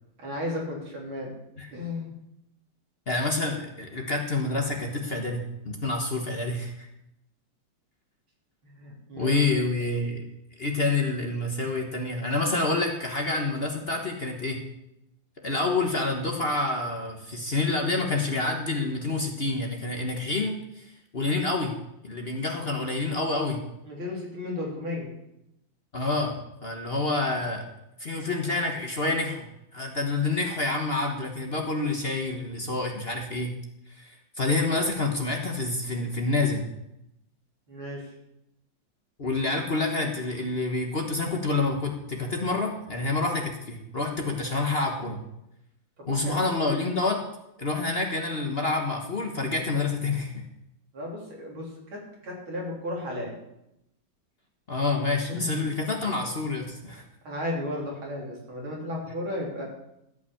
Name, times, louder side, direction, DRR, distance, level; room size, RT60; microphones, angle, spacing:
voice 1, 0.2-1.3 1.7-2.1 8.6-9.4 23.9-25.1 37.7-38.1 46.0-46.5 50.9-53.3 55.3-55.7 57.2-59.7, left 1 dB, 85° right, -3 dB, 4.5 m, -34 dB
voice 2, 3.1-6.9 9.2-10.2 10.6-14.6 15.4-21.7 22.0-23.6 25.9-27.6 28.0-33.5 33.9-36.6 39.2-45.2 46.1-47.2 47.6-50.4 54.7-57.0, left 3 dB, 35° left, 2 dB, 1.3 m, -28 dB
13.5 x 5.9 x 8.5 m, 0.84 s
omnidirectional pair, 2.2 m